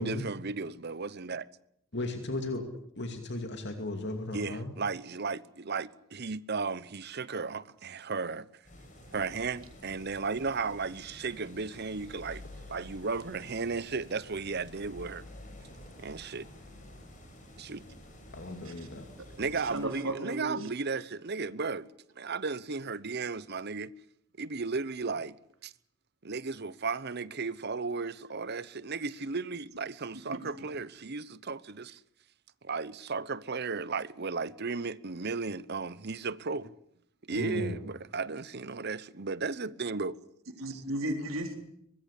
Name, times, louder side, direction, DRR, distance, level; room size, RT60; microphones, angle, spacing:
voice 1, 0.0-1.5 4.3-8.5 9.1-12.4 12.7-15.3 16.0-16.5 17.6-17.8 19.4-21.9 22.2-23.9 24.4-25.7 26.2-32.0 32.6-36.7 37.3-40.2 40.7-40.8, right 4 dB, 55° right, 0.9 m, -35 dB
voice 2, 1.9-2.6 3.0-4.7 18.3-19.1 37.3-37.8, left 2 dB, 55° left, 2.6 m, -35 dB
sound 1, 8.6-19.9, left 1 dB, 40° left, 7.2 m, -50 dB
voice 3, 19.5-20.7 30.3-30.4 40.6-41.6, right 1 dB, 85° right, 4.0 m, -35 dB
23.5 x 21.0 x 8.4 m
head